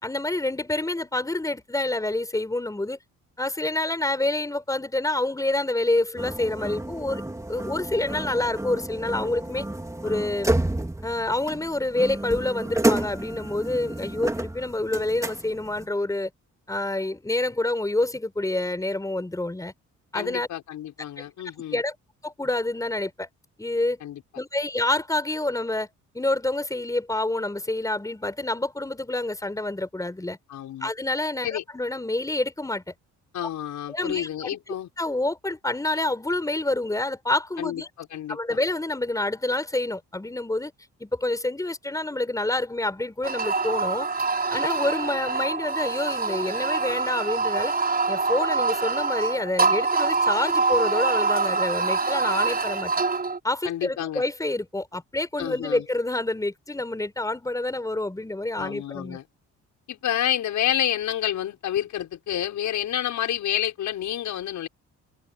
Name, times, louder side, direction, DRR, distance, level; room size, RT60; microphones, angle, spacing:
voice 1, 0.0-3.0 3.4-7.2 7.5-9.7 10.0-10.5 11.0-16.3 16.7-19.7 20.1-20.5 21.2-21.3 21.7-21.9 22.2-23.3 23.6-24.0 24.4-25.9 26.1-30.4 30.8-32.9 33.9-34.5 35.0-37.9 38.3-40.7 41.0-44.1 44.5-47.8 48.1-52.9 53.4-59.2, left 2 dB, 10° left, 4.3 m, -27 dB
sound 1, 6.2-15.9, right 1 dB, 10° right, 3.0 m, -30 dB
voice 2, 20.1-21.8 24.0-24.2 30.5-30.9 31.4-31.6 33.3-34.9 37.6-38.6 53.6-54.2 55.4-55.8 58.6-59.2 59.9-64.7, left 11 dB, 75° left, 6.3 m, -29 dB
sound 2, 43.2-53.4, right 4 dB, 30° right, 5.6 m, -25 dB
cardioid pair, 90°, 30 cm